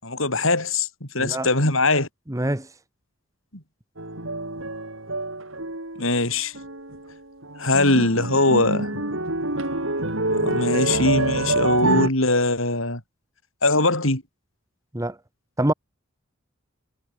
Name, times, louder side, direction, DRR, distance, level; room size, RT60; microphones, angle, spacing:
voice 1, 0.0-2.1 3.5-3.6 6.0-6.5 7.6-9.0 10.3-13.0 13.6-14.2, left 2 dB, 70° left, 7.8 m, -21 dB
voice 2, 2.3-2.7 14.9-15.2 15.6-15.7, right 1 dB, 15° right, 1.3 m, -24 dB
sound 1, 4.0-6.3 6.5-7.1 7.4-12.1, right 2 dB, 65° right, 6.0 m, -26 dB
head